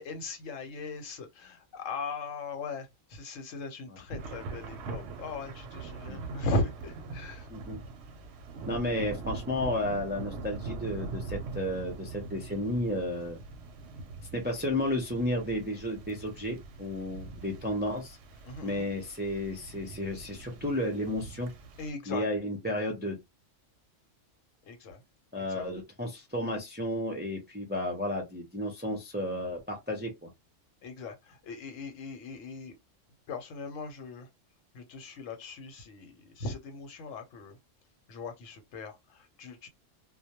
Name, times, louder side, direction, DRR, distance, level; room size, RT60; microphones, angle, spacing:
voice 1, 0.0-7.5 18.4-18.9 21.8-22.2 24.6-25.0 25.5-25.6 30.8-32.7 33.3-34.3 34.7-37.6 38.1-39.7, left 2 dB, 85° left, 1.1 m, -38 dB
Thunder / Rain, 4.2-21.9, right 3 dB, 65° right, 0.8 m, -42 dB
voice 2, 8.7-13.4 14.3-18.2 18.6-21.5 22.1-23.2 25.3-30.3, left 1 dB, 15° right, 0.4 m, -32 dB
2.2 x 2.1 x 2.8 m
omnidirectional pair, 1.3 m